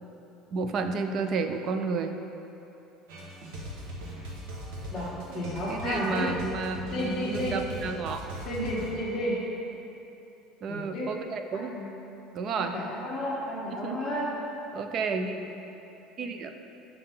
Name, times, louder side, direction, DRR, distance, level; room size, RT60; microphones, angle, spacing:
voice 1, 0.5-2.1 5.3-8.3 10.6-11.8 12.3-12.7 13.8-14.0 14.7-15.5 16.2-16.5, right 4 dB, 35° right, 7 dB, 0.4 m, -31 dB
sound 1, 3.1-8.9, equal, 80° right, 1.3 m, -40 dB
voice 2, 5.3-6.3 6.9-7.6 8.4-9.4 10.7-11.1 11.5-11.9 12.5-14.3 15.5-15.6, equal, 10° left, -13 dB, 1.1 m, -32 dB
5.7 x 5.5 x 5.5 m, 3.0 s
cardioid pair, 170°, 0 cm